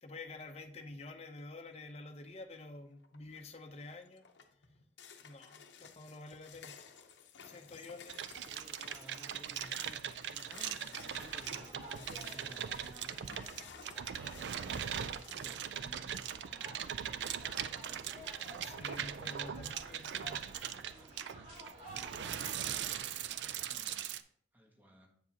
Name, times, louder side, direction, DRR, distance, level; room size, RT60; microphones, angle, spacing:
voice 1, 0.0-4.2 5.2-6.8 7.4-8.3 18.6-20.4, left 2 dB, 35° left, 6 dB, 0.7 m, -49 dB
sound 1, 3.0-3.4 3.8-15.5, left 7 dB, 75° left, 0.7 m, -56 dB
sound 2, 8.1-24.2, right 9 dB, 70° right, 0.4 m, -40 dB
voice 2, 8.3-13.4 14.4-17.5 23.0-24.1 24.5-25.1, equal, 10° right, 2 dB, 1.0 m, -57 dB
sound 3, 10.9-22.5, equal, 30° right, 2.1 m, -54 dB
8.0 x 7.2 x 2.8 m, 0.63 s
head